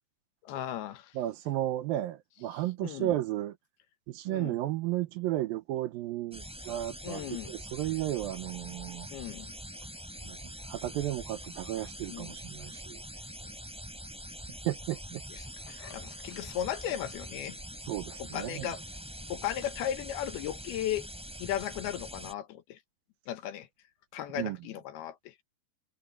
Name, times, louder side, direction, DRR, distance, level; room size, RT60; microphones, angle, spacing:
voice 1, 0.4-1.1 2.8-3.1 4.3-4.6 7.0-7.5 9.1-9.5 12.1-12.4 15.3-17.6 18.3-18.8 19.3-21.1 21.4-22.8 23.3-23.7 24.1-25.3, left 11 dB, 80° left, 3.1 m, -36 dB
voice 2, 1.1-3.6 4.1-9.1 10.2-13.0 14.7-15.2 17.9-18.7 24.3-24.6, right 14 dB, 75° right, 2.4 m, -34 dB
sound 1, 6.3-22.3, equal, ahead, 5.9 m, -44 dB
omnidirectional pair, 4.5 m